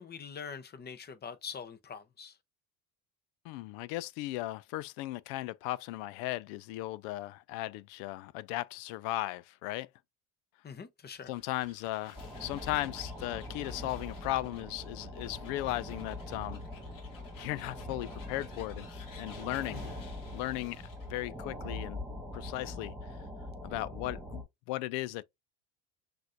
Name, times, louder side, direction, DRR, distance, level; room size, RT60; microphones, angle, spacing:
voice 1, 0.0-2.4 10.6-11.3 19.7-19.9, left 6 dB, 20° left, 0.7 m, -44 dB
voice 2, 3.4-9.9 11.3-16.6 17.4-19.8 20.3-20.8 21.1-22.0 22.3-22.9 23.6-25.2, left 17 dB, 70° left, 0.5 m, -36 dB
sound 1, 11.1-21.2, left 6 dB, 45° left, 1.4 m, -56 dB
sound 2, 12.1-24.4, left 1 dB, ahead, 1.8 m, -43 dB
6.0 x 2.6 x 2.5 m
supercardioid pair, 95°, 45 cm